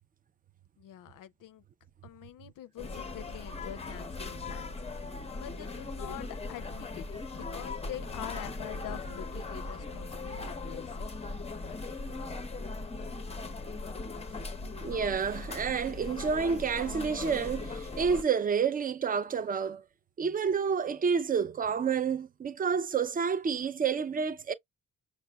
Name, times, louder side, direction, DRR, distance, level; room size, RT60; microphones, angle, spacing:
voice 1, 0.8-1.6 2.0-4.7 5.1-7.0 7.3-11.1, left 12 dB, 65° left, 0.5 m, -45 dB
sound 1, 2.8-18.2, left 3 dB, 20° left, 0.6 m, -39 dB
voice 2, 14.8-19.8 20.2-24.5, right 6 dB, 25° right, 0.4 m, -29 dB
5.8 x 2.1 x 2.2 m
cardioid pair, 75°, 35 cm